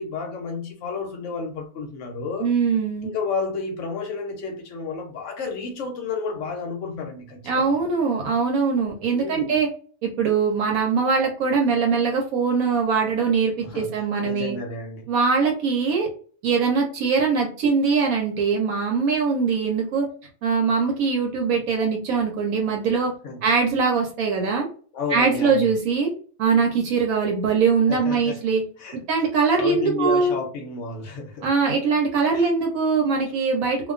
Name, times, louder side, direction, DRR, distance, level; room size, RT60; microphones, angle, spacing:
voice 1, 0.0-2.5 3.0-7.7 9.1-9.6 13.6-15.1 23.2-23.5 24.9-25.7 27.9-28.4 28.8-29.0 29.6-31.5 32.3-32.5, left 4 dB, 70° left, 0.8 m, -31 dB
voice 2, 2.4-3.1 7.5-9.7 10.0-14.6 15.1-16.1 16.4-20.1 20.4-23.1 23.4-24.7 25.1-26.1 26.4-28.6 28.9-30.4 31.4-33.9, right 5 dB, 80° right, 1.1 m, -22 dB
2.4 x 2.2 x 2.3 m
omnidirectional pair, 1.4 m